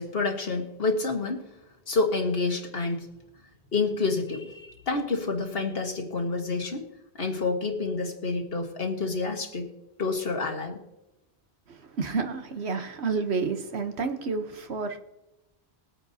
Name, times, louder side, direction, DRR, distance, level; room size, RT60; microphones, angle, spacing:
voice 1, 0.0-1.5 1.9-3.1 3.7-6.9 7.2-9.7 10.0-10.8, left 3 dB, 60° left, 1.7 m, -28 dB
voice 2, 11.7-15.0, right 4 dB, 75° right, 1.3 m, -30 dB
21.5 x 8.9 x 2.8 m
omnidirectional pair, 1.1 m